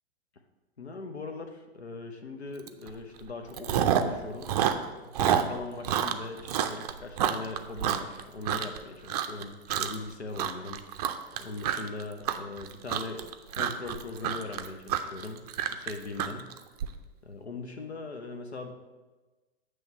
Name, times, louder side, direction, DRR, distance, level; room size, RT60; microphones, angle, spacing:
voice 1, 0.8-13.3 13.6-16.5 17.2-18.7, left 3 dB, 80° left, 5 dB, 0.7 m, -40 dB
Chewing mastication, 2.7-2.9 3.2-4.2 4.4-8.8 9.1-9.4 9.7-10.1 10.4-16.9, right 10 dB, 40° right, 0.4 m, -28 dB
7.7 x 3.2 x 5.5 m, 1.2 s
figure-of-eight pair, 105°, 32 cm